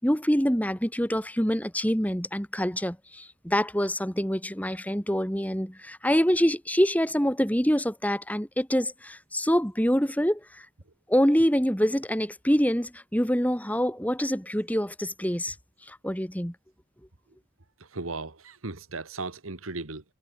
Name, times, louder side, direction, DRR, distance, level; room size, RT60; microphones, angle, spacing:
voice 1, 0.0-10.7 11.1-15.6 15.9-16.5, equal, 5° left, 4.0 m, -25 dB
voice 2, 17.9-20.0, right 3 dB, 80° right, 1.9 m, -36 dB
head